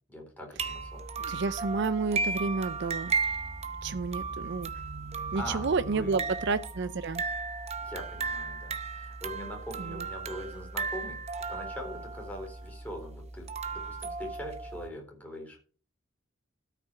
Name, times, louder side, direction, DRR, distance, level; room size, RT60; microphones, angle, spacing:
voice 1, 0.1-1.1 5.3-5.7 5.9-6.2 7.8-11.2 11.5-15.6, equal, 5° left, 1 dB, 4.0 m, -42 dB
sound 1, 0.6-14.9, right 4 dB, 30° right, 0.7 m, -35 dB
voice 2, 1.2-3.2 3.8-4.7 5.3-7.2 9.8-10.0, right 4 dB, 55° right, 13 dB, 0.5 m, -30 dB
13.0 x 5.9 x 5.6 m, 0.40 s
head